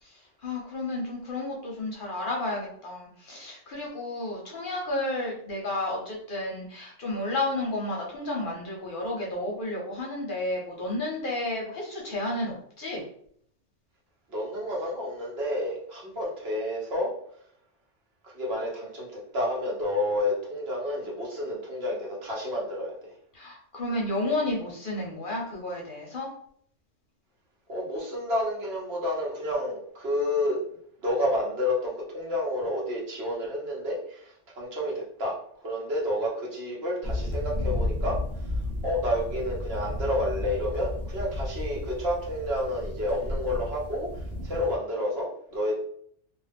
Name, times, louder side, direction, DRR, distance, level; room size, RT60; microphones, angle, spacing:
voice 1, 0.0-13.0 23.3-26.3, left 2 dB, 55° left, -2 dB, 0.7 m, -32 dB
voice 2, 14.3-17.1 18.2-23.1 27.7-30.6 31.0-35.4 35.6-38.5 38.8-45.7, left 1 dB, 60° right, -3 dB, 1.0 m, -30 dB
sound 1, 37.0-44.7, left 1 dB, 20° left, 0.4 m, -33 dB
2.4 x 2.3 x 3.3 m, 0.64 s
omnidirectional pair, 1.2 m